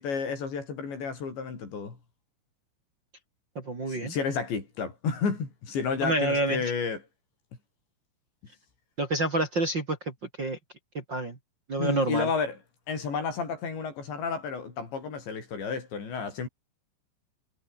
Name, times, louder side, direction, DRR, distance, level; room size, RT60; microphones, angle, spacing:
voice 1, 0.0-2.0 3.9-7.0 11.8-12.6 12.9-16.5, left 5 dB, 75° left, 8.4 m, -31 dB
voice 2, 3.5-4.1 6.0-6.6 9.0-10.6 10.9-11.4 11.7-12.3, right 2 dB, 30° right, 2.9 m, -28 dB
omnidirectional pair, 5.2 m